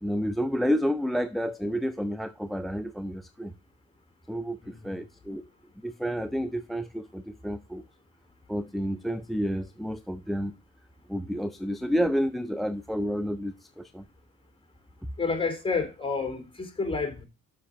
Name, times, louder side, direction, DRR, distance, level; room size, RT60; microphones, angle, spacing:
voice 1, 0.0-3.5 4.3-5.4 5.8-7.8 8.5-10.5 11.1-14.1, equal, ahead, 0.4 m, -30 dB
voice 2, 4.6-5.0 15.2-17.3, left 4 dB, 15° left, 2.6 m, -30 dB
7.0 x 5.0 x 5.9 m
cardioid pair, 90°, 30 cm